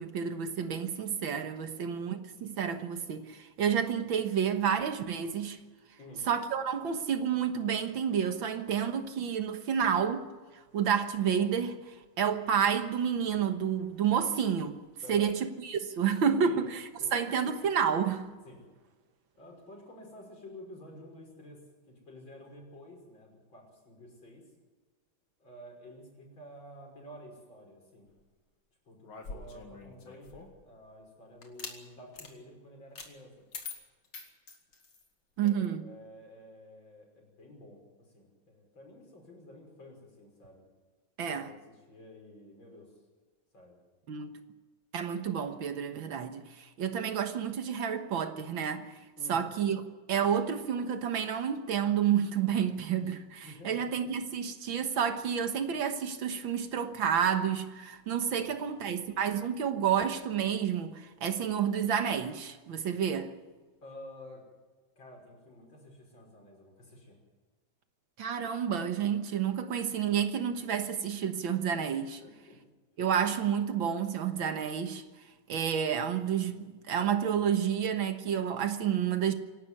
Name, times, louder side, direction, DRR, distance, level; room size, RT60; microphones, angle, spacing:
voice 1, 0.0-5.6 6.3-10.3 10.7-14.8 15.1-16.8 17.1-18.3 35.4-35.8 41.2-41.5 44.1-44.4 44.9-48.9 49.3-49.8 50.1-63.3 68.2-72.2 73.0-75.0 75.5-79.3, right 8 dB, 70° right, 2.1 m, -30 dB
voice 2, 15.0-15.3 16.4-16.7 17.0-17.2 18.4-18.6 19.3-24.5 25.4-28.1 28.8-33.4 35.4-40.6 41.2-42.9 43.5-43.8 49.2-49.5 53.4-53.9 58.4-59.1 63.8-64.4 65.0-67.2 72.2-72.6, left 1 dB, 70° left, 6.6 m, -51 dB
sound 1, 29.0-30.6 31.4-31.8 32.1-32.3 32.9-33.1 33.5-35.1, left 4 dB, 85° left, 3.1 m, -44 dB
26.0 x 12.0 x 9.7 m
omnidirectional pair, 2.2 m